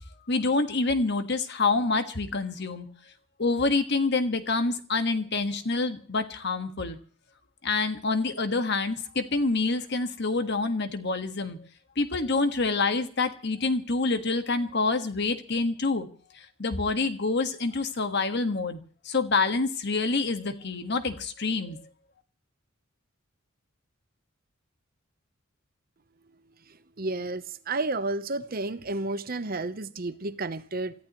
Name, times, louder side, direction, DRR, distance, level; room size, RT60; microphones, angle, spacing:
voice 1, 0.3-2.9 3.4-7.0 7.6-11.6 12.0-16.1 16.6-18.8 19.0-21.8, left 3 dB, 55° left, 1.6 m, -27 dB
voice 2, 26.7-30.9, right 2 dB, 45° right, 0.9 m, -31 dB
28.0 x 14.5 x 3.1 m
head